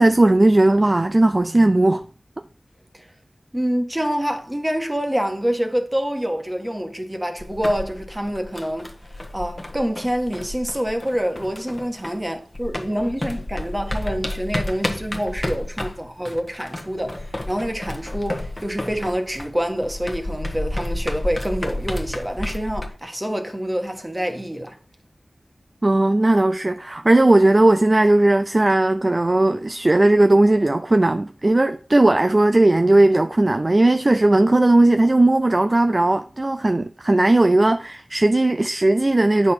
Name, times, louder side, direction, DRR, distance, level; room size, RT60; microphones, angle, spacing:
voice 1, 0.0-2.0 25.8-39.5, right 2 dB, 35° right, 0.4 m, -17 dB
voice 2, 3.5-8.9 9.3-24.8, equal, 15° right, 1.5 m, -26 dB
sound 1, 7.4-12.3 12.5-22.9, left 1 dB, 30° left, 1.2 m, -31 dB
8.5 x 5.9 x 4.4 m
wide cardioid pair, 70°, 0 cm